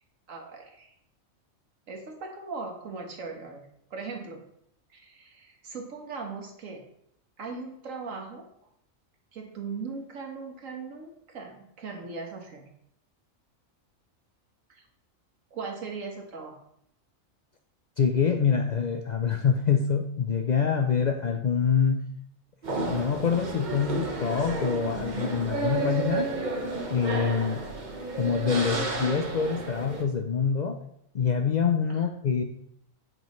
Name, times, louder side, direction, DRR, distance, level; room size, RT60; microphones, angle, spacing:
voice 1, 0.3-0.9 1.9-4.4 4.9-6.8 7.4-8.7 9.3-12.7 14.7-14.8 15.5-16.6 31.9-32.1, right 4 dB, 70° right, 2 dB, 1.6 m, -39 dB
voice 2, 18.0-22.0 22.7-26.3 26.9-27.6 28.2-30.8 31.1-32.4, left 6 dB, 90° left, 5 dB, 0.3 m, -25 dB
sound 1, 22.6-30.0, right 3 dB, 35° right, 1.0 m, -31 dB
8.9 x 5.2 x 3.1 m, 0.73 s
omnidirectional pair, 1.4 m